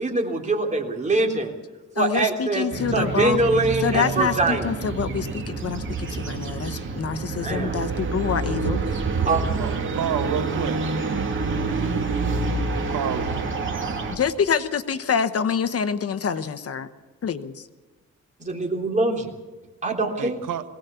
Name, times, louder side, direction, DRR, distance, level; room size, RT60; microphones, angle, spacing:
voice 1, 0.0-1.5 2.0-2.6 2.9-4.7 7.4-7.8 9.3-9.4 18.4-19.3 19.8-20.4, right 2 dB, 25° right, 1 dB, 3.5 m, -23 dB
voice 2, 2.0-3.4 3.8-8.8 14.1-16.9 17.2-17.7, left 6 dB, 50° left, 11 dB, 1.1 m, -26 dB
sound 1, 2.7-14.2, right 3 dB, 40° right, 2.8 m, -27 dB
voice 3, 9.6-10.8 12.9-13.3 20.1-20.6, right 9 dB, 85° right, 9 dB, 1.4 m, -29 dB
21.5 x 18.0 x 7.0 m, 1.2 s
cardioid pair, 135°, 31 cm